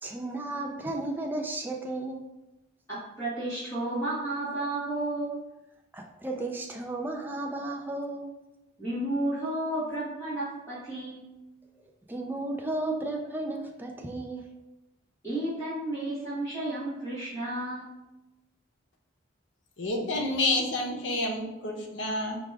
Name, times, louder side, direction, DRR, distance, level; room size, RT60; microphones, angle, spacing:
voice 1, 0.0-2.2 5.9-8.3 12.1-14.4, right 2 dB, 10° right, 1 dB, 0.3 m, -34 dB
voice 2, 2.9-5.4 8.8-11.2 15.2-17.9, right 1 dB, 15° left, -12 dB, 1.2 m, -32 dB
voice 3, 19.8-22.4, left 2 dB, 70° left, 1 dB, 0.7 m, -29 dB
4.8 x 2.3 x 3.3 m, 0.99 s
head